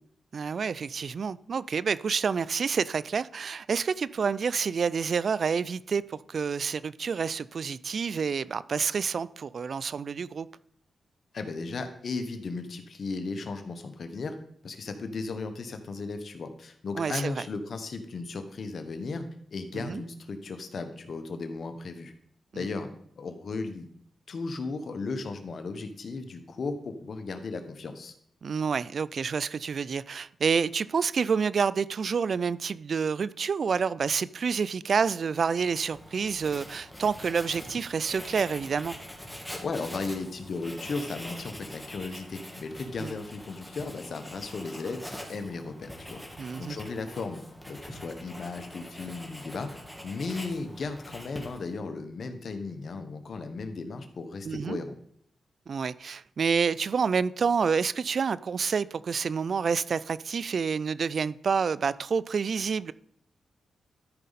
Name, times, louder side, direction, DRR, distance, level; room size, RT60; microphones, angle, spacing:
voice 1, 0.3-10.5 16.9-17.5 19.7-20.0 22.5-22.7 28.4-39.0 43.0-43.1 46.4-46.8 54.4-54.8 55.7-62.9, right 6 dB, 65° right, 0.3 m, -28 dB
voice 2, 11.3-14.3 14.6-19.2 19.5-22.1 22.5-22.9 23.2-23.9 24.3-28.1 39.6-46.2 46.6-47.4 47.7-49.7 50.0-55.0, left 3 dB, 65° left, 1.2 m, -35 dB
Writing, 35.6-51.8, equal, 5° left, 2.1 m, -44 dB
13.0 x 5.2 x 4.1 m
cardioid pair, 55°, 0 cm